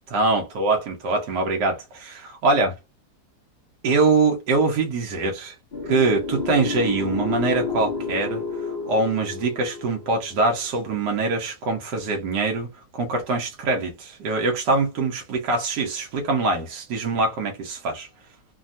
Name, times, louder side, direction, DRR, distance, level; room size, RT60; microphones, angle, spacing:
voice 1, 0.1-2.7 3.8-5.5 5.9-8.4 8.9-12.7 12.9-18.1, right 3 dB, 80° right, 1.4 m, -23 dB
sound 1, 5.7-10.8, left 4 dB, 65° left, 0.4 m, -30 dB
3.3 x 2.3 x 2.6 m
omnidirectional pair, 1.8 m